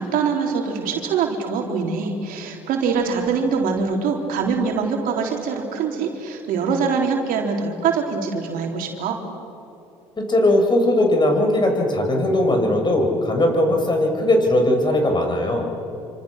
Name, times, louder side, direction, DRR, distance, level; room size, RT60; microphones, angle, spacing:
voice 1, 0.0-9.2, right 5 dB, 70° right, 2 dB, 3.6 m, -23 dB
voice 2, 10.2-15.7, left 1 dB, 30° left, 3 dB, 6.8 m, -19 dB
28.5 x 26.0 x 6.6 m, 2.9 s
hypercardioid pair, 60°, 15 cm